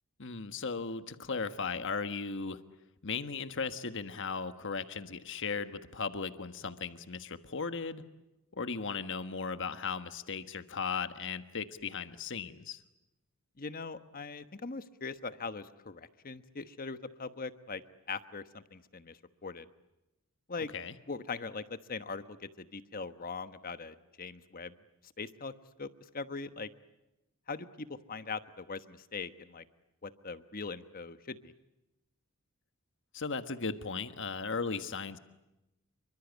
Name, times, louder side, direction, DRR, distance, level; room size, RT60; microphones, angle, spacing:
voice 1, 0.2-2.6 3.0-8.0 8.5-12.8 20.7-20.9 33.1-35.2, left 5 dB, 60° left, 10 dB, 1.4 m, -37 dB
voice 2, 13.6-17.8 18.1-19.7 20.5-20.7 21.1-24.7 25.2-25.5 25.8-26.7 27.5-29.6 30.0-31.5, left 4 dB, 40° left, 11 dB, 1.2 m, -41 dB
27.5 x 24.5 x 8.3 m, 0.95 s
head